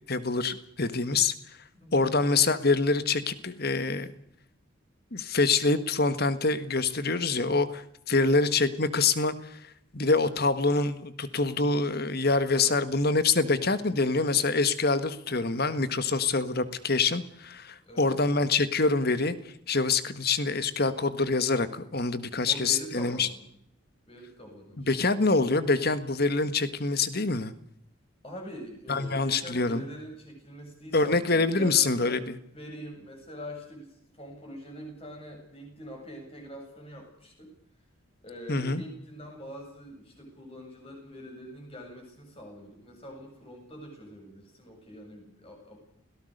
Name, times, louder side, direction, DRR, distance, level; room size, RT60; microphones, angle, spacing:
voice 1, 0.1-1.3 1.9-4.1 5.1-9.6 9.9-19.3 19.7-23.3 24.8-27.5 28.9-29.8 30.9-32.4 38.5-38.8, left 3 dB, 50° left, 13 dB, 1.6 m, -25 dB
voice 2, 1.7-2.2 8.1-8.4 12.4-12.8 17.8-18.2 22.1-23.4 24.1-24.9 28.2-32.2 32.5-37.5 38.2-45.8, equal, 25° left, 2 dB, 8.0 m, -44 dB
28.0 x 18.0 x 6.7 m, 0.76 s
head